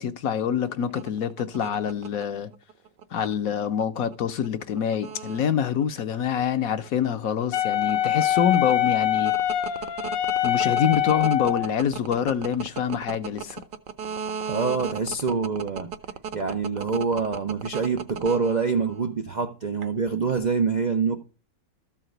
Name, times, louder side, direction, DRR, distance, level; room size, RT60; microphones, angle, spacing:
voice 1, 0.0-2.5 3.1-9.3 10.4-13.6, left 8 dB, 65° left, 1.0 m, -26 dB
sound 1, 0.7-19.1 19.8-20.4, right 7 dB, 60° right, 1.0 m, -35 dB
Wind instrument woodwind instrument, 7.5-11.7, left 11 dB, 80° left, 1.4 m, -24 dB
voice 2, 14.5-15.9 16.3-21.2, right 5 dB, 90° right, 0.3 m, -25 dB
13.5 x 4.8 x 7.8 m
omnidirectional pair, 1.9 m